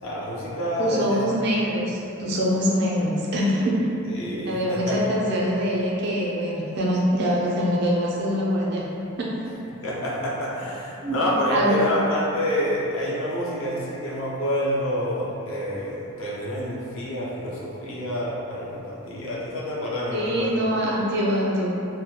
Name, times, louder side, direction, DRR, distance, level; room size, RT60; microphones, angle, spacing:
voice 1, 0.0-1.3 4.2-5.0 9.8-20.6, equal, 65° left, -6 dB, 0.5 m, -28 dB
voice 2, 0.8-3.7 4.4-8.8 9.2-9.3 11.0-11.9 20.1-21.7, equal, 50° right, -4 dB, 0.4 m, -24 dB
2.2 x 2.0 x 2.8 m, 2.8 s
head